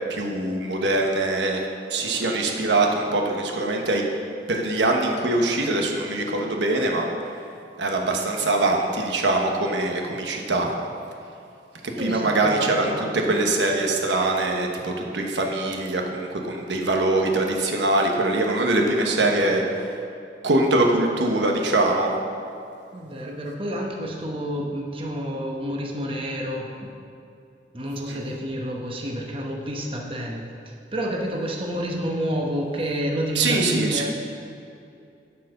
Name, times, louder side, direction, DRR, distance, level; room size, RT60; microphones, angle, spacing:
voice 1, 0.1-1.6 1.9-4.0 4.5-7.1 7.3-7.4 7.8-10.7 11.8-20.0 20.4-22.1 33.3-34.1, right 2 dB, 90° right, 1 dB, 1.1 m, -23 dB
voice 2, 12.0-12.6 12.9-13.4 19.2-19.5 22.9-26.9 27.7-34.1, equal, 30° right, -1 dB, 0.9 m, -29 dB
10.0 x 4.8 x 6.5 m, 2.6 s
head